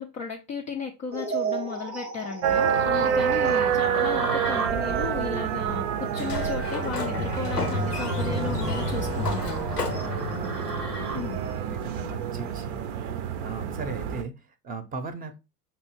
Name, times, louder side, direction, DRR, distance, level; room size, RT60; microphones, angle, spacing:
voice 1, 0.0-9.7 11.1-11.5, left 5 dB, 20° left, 0.3 m, -34 dB
sound 1, 1.1-12.9, right 4 dB, 85° right, 0.9 m, -36 dB
sound 2, 2.4-14.2, right 8 dB, 50° right, 0.6 m, -28 dB
Sliding door, 6.1-11.8, left 2 dB, 90° left, 0.8 m, -31 dB
voice 2, 10.4-10.8 11.7-15.4, right 4 dB, 20° right, 0.7 m, -38 dB
5.4 x 2.6 x 2.9 m
figure-of-eight pair, 75°, 46 cm